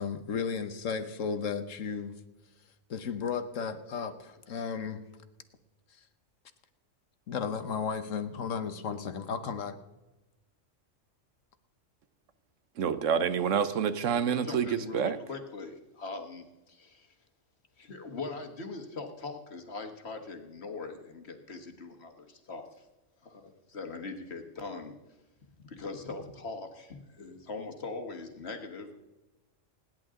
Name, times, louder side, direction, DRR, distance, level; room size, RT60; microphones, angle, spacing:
voice 1, 0.0-2.2 2.9-5.0 7.3-9.8, left 6 dB, 80° left, 1.4 m, -34 dB
voice 2, 12.8-15.2, right 7 dB, 75° right, 1.2 m, -28 dB
voice 3, 14.3-17.1 17.8-22.9 23.2-25.0 25.6-28.9, left 3 dB, 55° left, 1.8 m, -41 dB
28.5 x 10.5 x 3.8 m
omnidirectional pair, 1.3 m